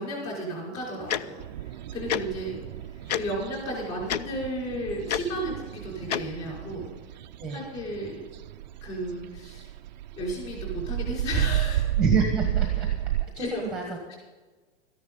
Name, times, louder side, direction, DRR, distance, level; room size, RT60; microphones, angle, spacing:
voice 1, 0.0-2.6 3.1-6.9 7.5-8.2 8.8-9.7 10.1-11.9 13.4-13.6 14.1-14.2, equal, 20° left, -3 dB, 5.4 m, -33 dB
Tick-tock, 1.1-1.2 2.1-2.2 3.1-3.2 4.1-4.2 5.1-5.2 6.1-6.2, left 10 dB, 40° left, 0.4 m, -26 dB
sound 1, 1.4-13.3, right 13 dB, 45° right, 0.4 m, -32 dB
voice 2, 12.0-12.9 13.3-14.0, right 4 dB, ahead, 1 dB, 1.2 m, -27 dB
13.5 x 10.5 x 5.5 m, 1.3 s
supercardioid pair, 170°, 33 cm